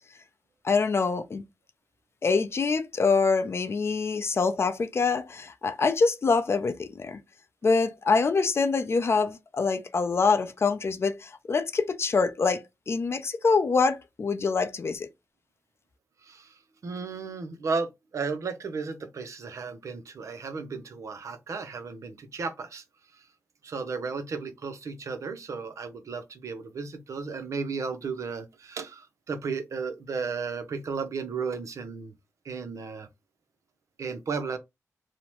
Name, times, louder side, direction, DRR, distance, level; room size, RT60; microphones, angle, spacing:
voice 1, 0.6-1.4 2.2-7.2 7.6-15.1, left 4 dB, 45° left, 0.5 m, -25 dB
voice 2, 16.2-22.8 23.6-32.1 32.4-33.1 34.0-34.6, right 5 dB, 60° right, 0.6 m, -34 dB
2.8 x 2.1 x 2.9 m
cardioid pair, 70°, 6 cm